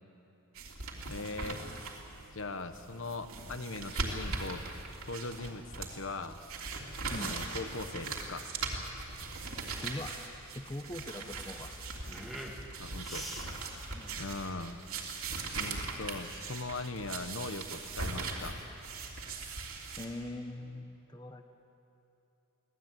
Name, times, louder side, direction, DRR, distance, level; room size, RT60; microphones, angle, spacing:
sound 1, 0.5-20.1, right 3 dB, 75° right, 3.2 m, -40 dB
voice 1, 1.1-1.6 2.3-4.6 5.0-6.4 7.2-8.5 12.8-13.3 14.2-14.8 15.5-18.6, left 3 dB, 60° left, 9 dB, 1.2 m, -40 dB
sound 2, 7.0-15.1, equal, ahead, 2.0 m, -48 dB
voice 2, 9.8-10.1 10.5-11.7 13.9-14.2 20.0-21.6, left 1 dB, 20° left, 6 dB, 0.9 m, -42 dB
25.0 x 18.5 x 9.2 m, 2.9 s
head